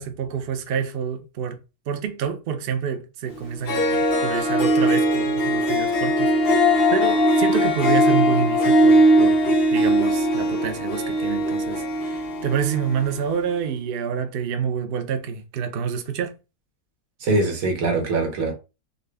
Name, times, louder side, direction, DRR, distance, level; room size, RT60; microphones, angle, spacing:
voice 1, 0.0-1.6 1.9-16.3, right 7 dB, 85° right, 0.5 m, -28 dB
Harp, 3.4-3.5 3.7-13.2, equal, 45° left, 0.9 m, -20 dB
voice 2, 17.2-18.6, right 2 dB, 65° right, 1.3 m, -22 dB
3.9 x 2.2 x 3.3 m
omnidirectional pair, 1.7 m